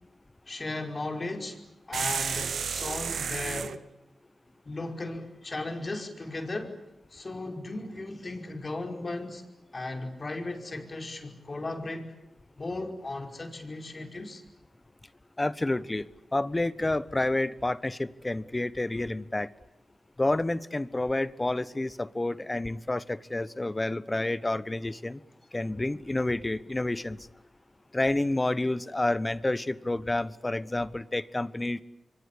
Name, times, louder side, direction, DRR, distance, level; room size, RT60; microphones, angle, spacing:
voice 1, 0.5-1.6 1.9-3.8 4.6-6.7 7.1-9.4 9.7-12.1 12.6-14.4, left 2 dB, 40° left, 4 dB, 5.2 m, -36 dB
sound 1, 1.9-3.8, right 6 dB, 75° right, 1.0 m, -31 dB
voice 2, 15.4-19.5 20.2-25.2 25.5-27.2 27.9-31.8, left 2 dB, 25° left, 17 dB, 1.2 m, -29 dB
27.5 x 24.0 x 8.6 m, 0.90 s
cardioid pair, 45°, 0 cm